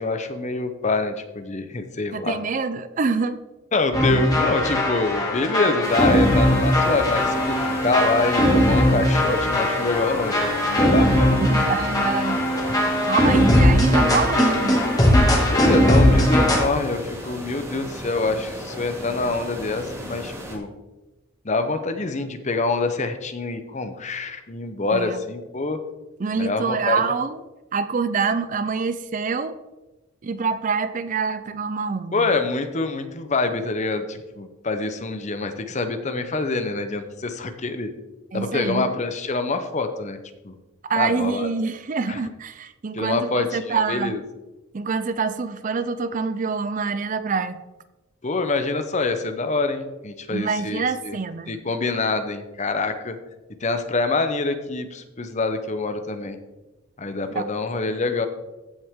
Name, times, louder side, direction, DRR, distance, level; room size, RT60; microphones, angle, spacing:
voice 1, 0.0-2.4 3.7-11.4 15.3-20.7 21.4-25.8 26.4-27.0 32.1-37.9 38.3-40.2 40.4-40.5 41.0-41.5 42.1-42.2 42.9-44.2 48.2-51.2 51.5-53.2 53.6-56.4 57.0-58.3, left 3 dB, 35° left, 8 dB, 0.7 m, -25 dB
voice 2, 2.1-3.4 11.5-12.4 13.1-14.8 24.9-25.2 26.2-27.4 27.7-29.6 30.2-32.3 38.3-38.9 40.8-44.2 44.7-47.6 50.3-51.6 57.3-57.4, right 5 dB, 35° right, 12 dB, 0.4 m, -26 dB
sound 1, 3.9-16.6, left 1 dB, 15° left, 2.1 m, -19 dB
sound 2, 5.8-20.6, equal, 15° right, 2.1 m, -36 dB
15.0 x 6.0 x 3.6 m, 1.1 s
head